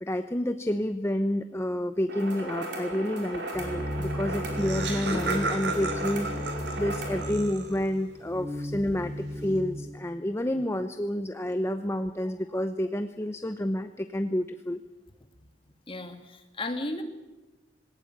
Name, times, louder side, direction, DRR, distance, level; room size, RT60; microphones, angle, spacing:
voice 1, 0.0-6.3 6.8-14.8, left 1 dB, 15° left, 9 dB, 0.8 m, -29 dB
sound 1, 2.1-7.2, right 1 dB, 70° right, 5.3 m, -37 dB
sound 2, 3.5-9.8, equal, 20° right, 2.6 m, -35 dB
Laughter, 4.0-4.1 4.3-7.9, right 2 dB, 85° right, 4.0 m, -33 dB
voice 2, 15.9-17.0, left 2 dB, 30° left, 6 dB, 2.3 m, -34 dB
20.0 x 18.0 x 9.5 m, 1.1 s
head